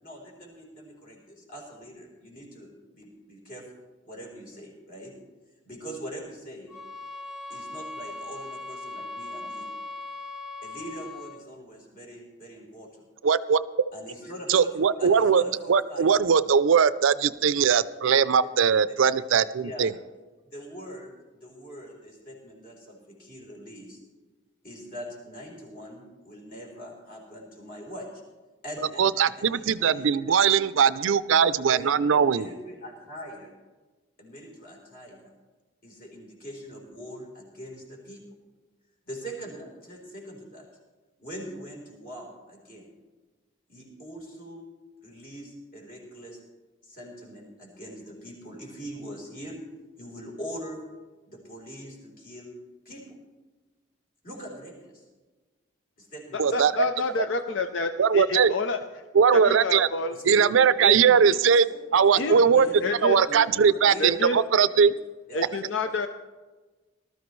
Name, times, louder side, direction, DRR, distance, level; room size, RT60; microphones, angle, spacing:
voice 1, 0.0-3.7 4.1-5.1 5.6-6.7 7.5-9.7 10.6-13.0 13.9-14.7 15.0-16.2 18.2-18.3 18.9-19.0 19.3-19.9 20.4-24.0 24.6-28.2 28.6-30.5 31.6-31.9 32.1-33.6 34.2-35.3 35.8-38.2 39.1-40.6 41.2-42.9 43.7-44.6 45.0-46.4 46.8-49.6 50.0-50.8 51.3-52.5 52.9-53.0 54.2-55.0 56.0-57.0 60.1-60.4 61.0-62.9 63.3-64.1 65.3-65.5, equal, 45° left, -1 dB, 3.9 m, -42 dB
sound 1, 6.7-11.5, left 2 dB, ahead, 0.8 m, -39 dB
voice 2, 13.2-13.6 14.5-15.4 15.7-19.9 29.0-32.5 56.4-56.7 57.2-57.3 58.0-58.5 59.1-59.9 60.3-61.7 61.9-62.7 63.0-64.9, right 6 dB, 90° right, 16 dB, 0.4 m, -20 dB
voice 3, 56.3-58.8 59.3-60.2 60.8-61.0 62.1-62.4 62.7-63.2 64.0-64.4 65.3-66.1, left 3 dB, 75° left, 7 dB, 0.5 m, -28 dB
19.5 x 13.0 x 3.2 m, 1.3 s
head